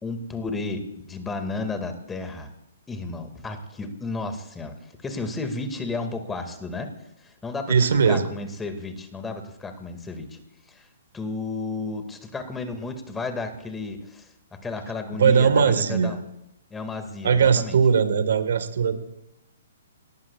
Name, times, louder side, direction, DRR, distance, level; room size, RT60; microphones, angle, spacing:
voice 1, 0.0-2.5 2.9-6.9 7.2-10.4 10.7-10.9 11.1-16.2 16.7-17.8, left 3 dB, 10° left, 6 dB, 2.1 m, -33 dB
voice 2, 7.7-8.2 15.2-16.1 17.2-19.0, right 6 dB, 65° right, 10 dB, 1.6 m, -19 dB
28.5 x 18.5 x 2.4 m, 0.83 s
hypercardioid pair, 130°, 0 cm